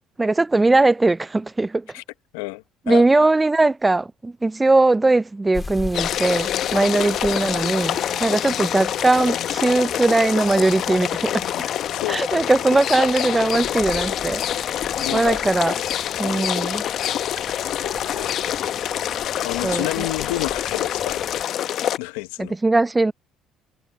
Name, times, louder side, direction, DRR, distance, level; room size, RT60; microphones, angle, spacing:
voice 1, 0.2-1.9 2.9-11.5 12.1-14.8 15.1-15.8 16.2-16.8 19.6-20.0 22.4-23.1, right 2 dB, 20° right, 0.5 m, -20 dB
voice 2, 2.3-3.0 6.7-7.0 11.3-12.5 15.0-15.4 16.3-16.7 17.7-18.4 19.4-21.6 22.0-22.6, left 21 dB, 85° left, 1.1 m, -31 dB
sound 1, 5.5-21.5, left 3 dB, 25° left, 3.1 m, -41 dB
sound 2, 5.9-22.0, left 11 dB, 60° left, 1.0 m, -26 dB
sound 3, 7.3-20.5, left 1 dB, 5° left, 6.8 m, -43 dB
supercardioid pair, 70°, 0 cm